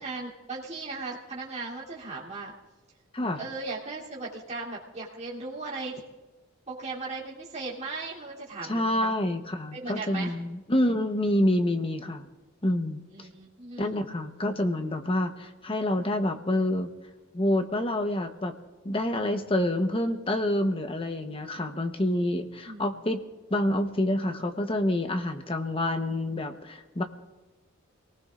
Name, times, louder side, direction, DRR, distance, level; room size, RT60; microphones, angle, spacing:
voice 1, 0.0-2.5 3.4-6.0 6.7-9.1 9.7-10.3 13.1-13.9 22.6-22.8, right 3 dB, 35° right, -7 dB, 3.2 m, -37 dB
voice 2, 8.7-12.2 12.6-13.3 13.8-16.9 17.3-18.5 18.8-23.2 23.5-27.0, left 1 dB, 25° left, 6 dB, 1.0 m, -27 dB
28.5 x 19.0 x 2.5 m, 1.2 s
head